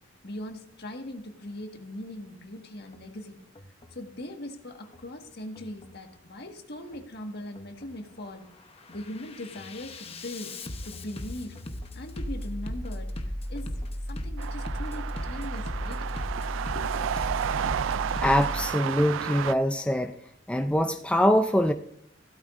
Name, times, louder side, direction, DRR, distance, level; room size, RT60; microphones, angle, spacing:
voice 1, 0.2-3.4 3.9-8.5 8.9-10.6 10.8-11.6 11.9-13.1 13.5-13.7 14.1-16.0 16.7-17.1, left 1 dB, 55° left, 1.7 m, -40 dB
Bass drum, 2.8-3.1 3.6-4.0 4.8-5.1 5.6-6.0 6.8-7.1 7.6-8.1 8.5-18.7, left 1 dB, 30° left, 1.0 m, -36 dB
sound 1, 14.4-19.5, right 9 dB, 85° right, 0.3 m, -32 dB
voice 2, 18.2-20.2 20.5-21.7, equal, 5° left, 0.4 m, -23 dB
16.0 x 12.5 x 2.5 m
head